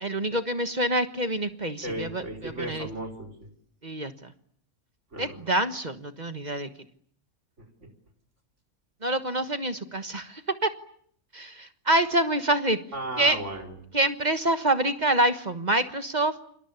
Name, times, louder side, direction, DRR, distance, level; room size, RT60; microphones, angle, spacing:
voice 1, 0.0-2.9 3.8-4.1 5.2-6.7 9.0-10.7 11.3-12.8 13.2-13.4 13.9-16.3, right 1 dB, 30° right, 9 dB, 1.4 m, -26 dB
voice 2, 1.8-3.5 5.1-5.5 7.6-7.9 12.9-13.8, right 1 dB, 55° right, 2 dB, 4.9 m, -35 dB
29.0 x 26.0 x 7.0 m, 0.64 s
omnidirectional pair, 1.5 m